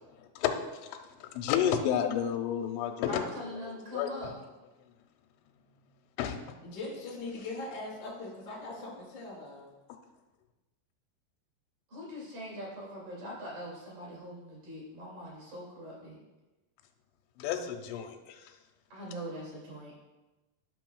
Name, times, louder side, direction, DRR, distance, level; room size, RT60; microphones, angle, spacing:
voice 1, 0.4-3.1 3.5-4.3 6.2-6.4 17.4-18.5, left 9 dB, 90° left, 5 dB, 3.1 m, -32 dB
voice 2, 3.1-4.3 11.9-16.2 18.9-19.9, equal, 50° right, -4 dB, 3.7 m, -42 dB
voice 3, 6.6-9.7, left 2 dB, 30° left, -5 dB, 1.0 m, -40 dB
12.0 x 6.3 x 2.3 m, 1.1 s
omnidirectional pair, 5.6 m